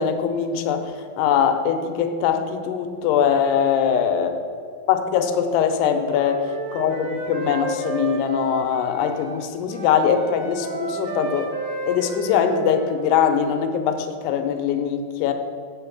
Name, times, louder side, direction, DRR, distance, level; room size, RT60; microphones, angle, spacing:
voice 1, 0.0-4.3 4.9-11.5 11.9-15.3, left 8 dB, 85° left, 7 dB, 2.7 m, -22 dB
Wind instrument woodwind instrument, 5.9-9.4 9.7-13.2, right 3 dB, 60° right, 2.7 m, -32 dB
7.5 x 5.9 x 7.1 m, 2.3 s
omnidirectional pair, 4.7 m